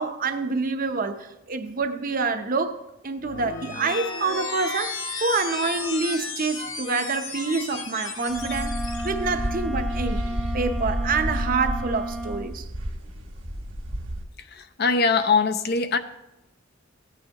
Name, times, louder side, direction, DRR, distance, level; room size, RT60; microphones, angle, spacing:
voice 1, 0.0-8.8 9.0-10.2 10.5-12.7, right 4 dB, 45° right, 0.7 m, -27 dB
sound 1, 3.2-9.1, left 4 dB, 75° left, 1.8 m, -34 dB
Wind instrument woodwind instrument, 8.1-12.5, right 1 dB, 5° left, 0.7 m, -33 dB
sound 2, 8.3-14.2, equal, 80° right, 2.0 m, -31 dB
voice 2, 14.4-16.0, left 4 dB, 55° left, 0.6 m, -22 dB
15.5 x 9.1 x 2.9 m
head